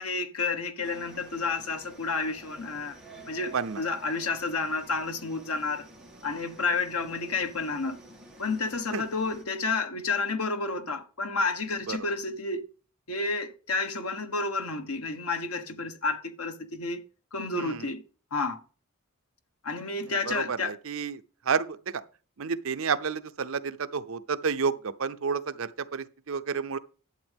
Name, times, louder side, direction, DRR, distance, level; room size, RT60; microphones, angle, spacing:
voice 1, 0.0-3.0 3.3-5.9 6.2-8.0 8.4-12.6 13.1-17.0 17.3-18.0 18.3-18.6 19.6-20.7, left 3 dB, 85° left, 1.3 m, -30 dB
sound 1, 0.8-9.4, right 1 dB, 5° right, 2.1 m, -50 dB
voice 2, 17.5-17.9 20.3-21.2 21.5-21.7 22.4-26.8, right 5 dB, 65° right, 0.6 m, -30 dB
11.5 x 7.9 x 3.6 m
head